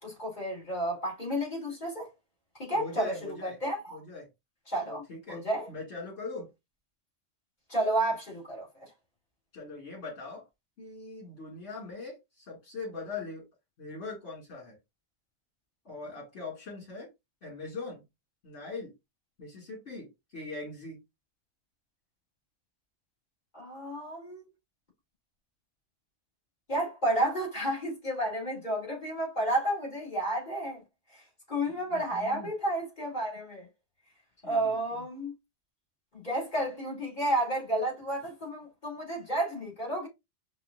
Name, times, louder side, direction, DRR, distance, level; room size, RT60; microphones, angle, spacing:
voice 1, 0.0-2.1 2.6-4.0 4.7-5.7 7.7-8.9 23.5-24.5 26.7-30.8 31.1-31.2 31.5-33.7 34.4-35.3 36.1-40.1, right 1 dB, 40° left, 2.3 m, -31 dB
voice 2, 2.7-3.6 3.9-4.3 4.9-6.5 9.5-10.5 10.8-13.5 13.8-14.8 15.8-17.1 17.4-18.0 18.4-18.9 19.4-21.0 31.9-32.5 34.4-35.1, left 3 dB, 65° left, 2.2 m, -41 dB
5.3 x 2.4 x 2.4 m
omnidirectional pair, 1.2 m